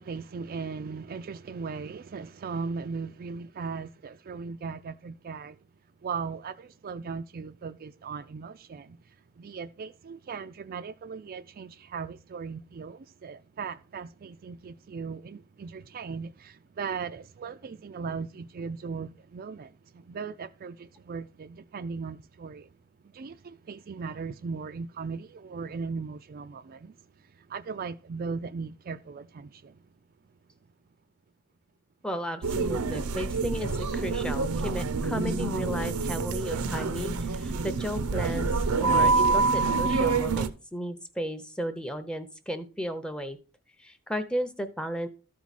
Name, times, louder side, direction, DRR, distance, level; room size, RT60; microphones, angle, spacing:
voice 1, 0.0-5.6 6.0-22.8 23.0-29.9, right 5 dB, 40° right, 0.3 m, -38 dB
voice 2, 32.0-43.4 43.8-45.1, equal, 5° left, 0.7 m, -34 dB
sound 1, 32.4-40.5, right 4 dB, 80° right, 0.6 m, -27 dB
13.0 x 4.7 x 4.1 m
head